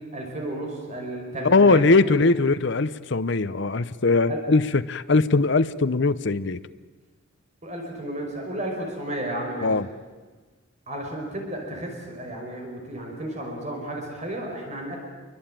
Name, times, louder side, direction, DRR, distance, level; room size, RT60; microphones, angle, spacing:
voice 1, 0.1-2.3 4.3-4.4 7.6-9.7 10.9-15.0, right 1 dB, 35° right, 2 dB, 5.4 m, -33 dB
voice 2, 1.4-6.6 9.6-9.9, left 3 dB, 60° left, 12 dB, 0.8 m, -20 dB
28.0 x 23.5 x 9.1 m, 1.3 s
head